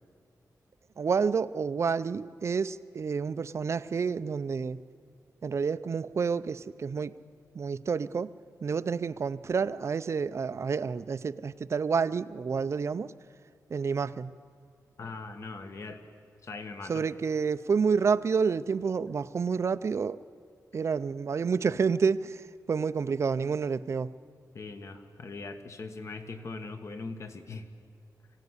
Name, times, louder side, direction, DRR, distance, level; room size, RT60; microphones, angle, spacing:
voice 1, 1.0-4.8 5.4-7.2 7.5-8.3 8.6-13.1 13.7-14.3 16.9-20.2 20.7-24.1, right 5 dB, 45° right, 14 dB, 0.5 m, -29 dB
voice 2, 15.0-16.0 16.4-17.1 24.5-27.7, left 3 dB, 45° left, 8 dB, 1.5 m, -40 dB
24.0 x 16.5 x 9.7 m, 2.3 s
wide cardioid pair, 175°, 7 cm